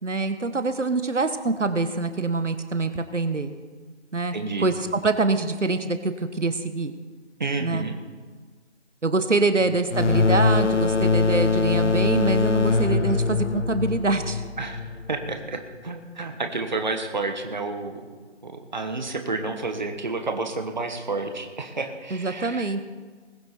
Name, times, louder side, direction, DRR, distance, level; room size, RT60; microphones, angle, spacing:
voice 1, 0.0-3.5 4.1-4.3 4.6-6.9 7.6-7.9 9.0-14.4 22.1-22.8, right 3 dB, 85° right, 9 dB, 1.3 m, -25 dB
voice 2, 4.3-4.7 7.4-8.0 9.6-9.7 14.6-18.1 18.4-22.7, right 3 dB, 40° right, 5 dB, 1.3 m, -30 dB
sound 1, 9.9-15.3, left 4 dB, 85° left, 1.1 m, -22 dB
21.0 x 7.8 x 4.5 m, 1.5 s
figure-of-eight pair, 165°, 35 cm